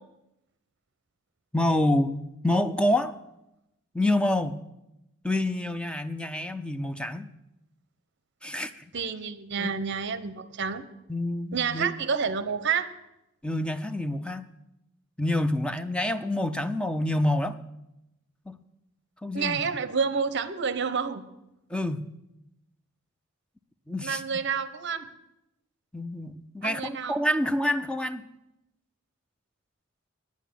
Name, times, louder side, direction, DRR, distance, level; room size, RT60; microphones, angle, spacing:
voice 1, 1.5-3.1 3.9-4.6 5.2-7.3 8.4-8.9 9.6-9.7 11.1-11.9 13.4-14.4 15.2-17.6 18.5-18.6 19.2-19.8 21.7-22.0 23.9-24.2 25.9-28.2, left 1 dB, 5° left, 10 dB, 0.4 m, -27 dB
voice 2, 8.9-10.8 11.5-12.9 19.3-21.2 24.0-25.1 26.6-27.2, right 6 dB, 55° right, 13 dB, 0.7 m, -29 dB
9.3 x 9.1 x 7.4 m, 0.89 s
head